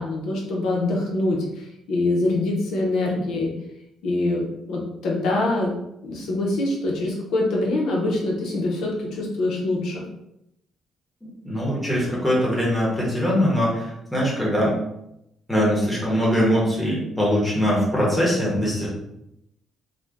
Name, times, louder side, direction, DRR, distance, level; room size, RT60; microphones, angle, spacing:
voice 1, 0.0-3.5 4.0-5.7 6.0-10.0, left 2 dB, 80° left, -2 dB, 0.7 m, -24 dB
voice 2, 11.2-14.7 15.5-18.9, equal, 5° left, -6 dB, 1.0 m, -22 dB
2.5 x 2.1 x 3.4 m, 0.82 s
cardioid pair, 150°, 0 cm